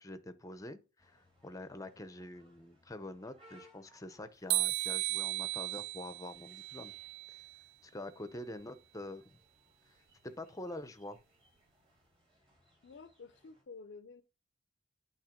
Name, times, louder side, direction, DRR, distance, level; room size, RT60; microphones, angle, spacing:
voice 1, 0.0-6.9 7.3-7.4 7.8-9.2 10.2-11.2, left 1 dB, 15° left, 0.6 m, -46 dB
sound 1, 1.0-13.6, equal, 25° right, 2.7 m, -67 dB
sound 2, 4.5-7.6, right 18 dB, 75° right, 0.3 m, -35 dB
voice 2, 12.8-14.2, left 4 dB, 65° left, 0.5 m, -51 dB
8.9 x 3.0 x 5.0 m
head